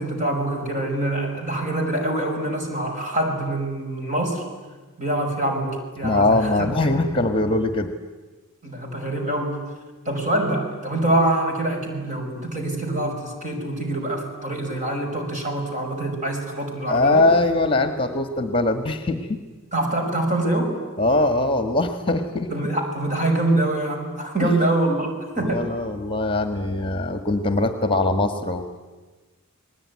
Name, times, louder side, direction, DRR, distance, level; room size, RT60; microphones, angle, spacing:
voice 1, 0.0-4.4 5.0-7.2 8.6-9.7 10.1-17.3 19.7-20.8 22.5-25.7, right 1 dB, 35° right, 2 dB, 5.7 m, -25 dB
voice 2, 6.0-7.9 16.9-19.4 21.0-22.7 24.4-24.5 25.4-28.7, left 2 dB, 25° left, 8 dB, 1.5 m, -22 dB
29.5 x 20.5 x 9.7 m, 1.3 s
head